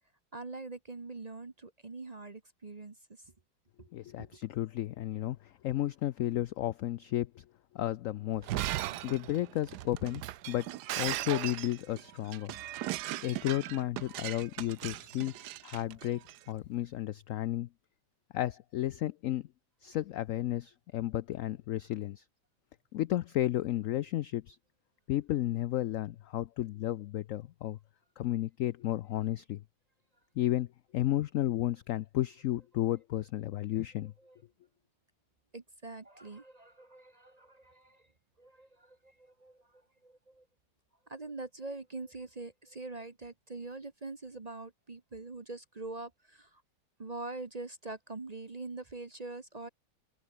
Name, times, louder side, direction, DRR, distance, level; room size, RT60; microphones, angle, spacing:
voice 1, 0.3-3.0 3.8-3.9 4.2-4.4 8.9-9.0 33.6-33.7 33.9-34.4 35.5-38.1 38.4-40.4 41.1-46.6 47.0-49.7, right 3 dB, 30° right, 0.9 m, -44 dB
voice 2, 3.9-7.4 7.7-8.5 9.0-10.7 11.0-12.5 13.2-15.3 15.6-17.7 18.3-19.5 19.8-22.2 22.9-24.6 25.1-27.8 28.2-29.6 30.4-30.7 30.9-34.1, left 14 dB, 80° left, 0.7 m, -33 dB
Shatter, 8.3-16.4, right 14 dB, 75° right, 1.2 m, -38 dB
open air
omnidirectional pair, 1.9 m